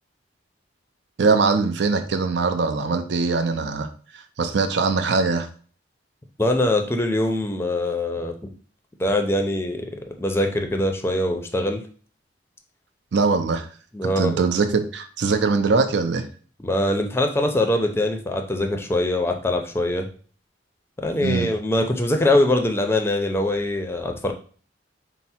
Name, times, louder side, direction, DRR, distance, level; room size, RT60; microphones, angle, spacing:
voice 1, 1.2-3.9 4.1-5.5 13.1-13.7 14.0-16.3 21.2-21.5, right 4 dB, 65° right, 7 dB, 0.5 m, -22 dB
voice 2, 6.4-8.5 9.0-9.9 10.2-11.8 13.9-14.5 16.6-20.1 21.0-24.3, left 1 dB, 15° left, 4 dB, 0.5 m, -23 dB
4.5 x 2.0 x 4.2 m, 0.42 s
head